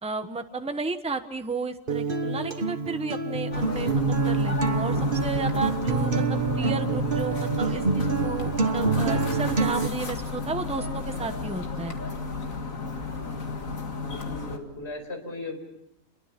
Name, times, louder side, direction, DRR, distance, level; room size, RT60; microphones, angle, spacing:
voice 1, 0.0-3.9 4.3-12.0, right 3 dB, 5° right, 7 dB, 1.0 m, -33 dB
Acoustic guitar, 1.9-9.9, right 4 dB, 40° right, 1.4 m, -26 dB
sound 1, 3.5-14.6, left 3 dB, 75° left, 2.6 m, -33 dB
voice 2, 13.8-15.6, left 2 dB, 50° left, 4 dB, 5.3 m, -38 dB
28.5 x 22.5 x 6.0 m, 0.82 s
omnidirectional pair, 1.4 m